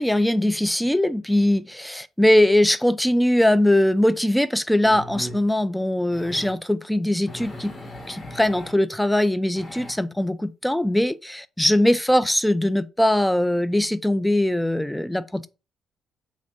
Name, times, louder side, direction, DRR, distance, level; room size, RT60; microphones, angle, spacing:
voice 1, 0.0-7.7 8.1-15.5, left 1 dB, 5° left, 0.3 m, -21 dB
sound 1, 4.0-4.1 4.8-5.4 6.1-6.6 7.3-8.7 9.5-9.9, left 1 dB, 35° left, 1.0 m, -38 dB
3.1 x 2.6 x 3.6 m
cardioid pair, 90°, 0 cm